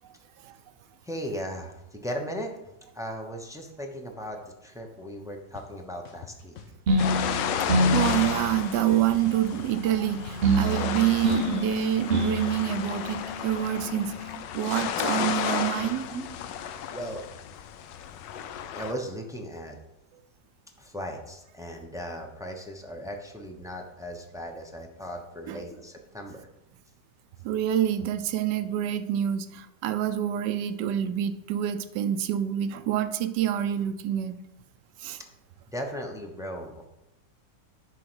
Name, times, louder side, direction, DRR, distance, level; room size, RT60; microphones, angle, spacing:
voice 1, 1.0-2.5 2.9-6.6 15.8-16.3 16.9-17.2 18.7-19.8 20.8-26.5 35.7-36.9, equal, 5° right, 2 dB, 0.5 m, -37 dB
sound 1, 5.5-5.6 6.0-7.0 7.4-8.5 8.7-11.0, left 7 dB, 55° left, 1.2 m, -45 dB
sound 2, 6.9-14.4, right 1 dB, 45° right, 0.8 m, -28 dB
sound 3, 7.0-18.9, left 9 dB, 85° left, 1.3 m, -33 dB
voice 2, 7.9-14.1 14.5-16.0 25.5-25.6 27.4-34.3 35.0-35.2, right 11 dB, 75° right, 10 dB, 1.2 m, -27 dB
10.5 x 3.9 x 6.2 m, 0.89 s
omnidirectional pair, 1.9 m